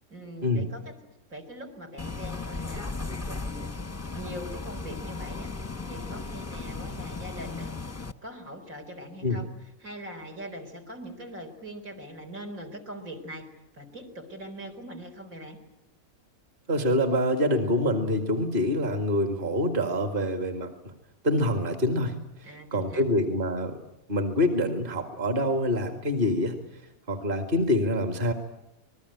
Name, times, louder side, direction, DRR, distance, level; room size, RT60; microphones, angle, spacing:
voice 1, 0.1-0.9 1.3-2.9 3.3-3.7 4.1-5.5 5.8-7.8 8.2-13.5 13.7-15.6 22.4-23.2, equal, 75° right, 7 dB, 4.6 m, -42 dB
Bus, 2.0-8.1, left 3 dB, 15° left, 0.8 m, -36 dB
voice 2, 16.7-20.7 21.2-22.1 22.7-23.8 24.1-26.6 27.1-28.3, left 1 dB, 40° right, 6 dB, 2.1 m, -25 dB
27.5 x 20.5 x 9.8 m, 0.91 s
omnidirectional pair, 1.5 m